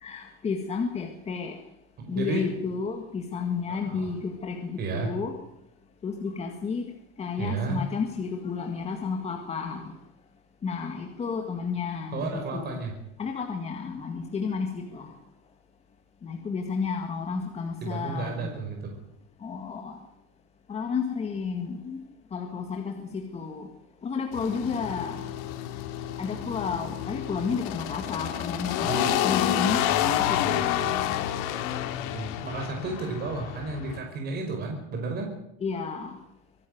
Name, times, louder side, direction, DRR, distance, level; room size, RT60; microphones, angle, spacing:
voice 1, 0.0-1.5 2.1-5.3 6.0-6.8 7.2-9.9 10.6-12.8 13.2-15.1 16.2-18.5 19.4-20.0 20.7-22.0 22.3-23.7 24.0-25.2 26.2-30.6 35.6-36.2, left 5 dB, 20° left, 3 dB, 2.0 m, -32 dB
voice 2, 2.1-2.7 3.7-4.1 4.8-5.1 7.4-7.8 12.1-12.9 17.8-18.9 28.8-29.1 32.1-35.3, right 3 dB, 35° right, 2 dB, 5.3 m, -32 dB
sound 1, 24.3-34.0, left 11 dB, 75° left, 2.6 m, -29 dB
25.0 x 13.0 x 9.4 m, 0.79 s
cardioid pair, 170°, 29 cm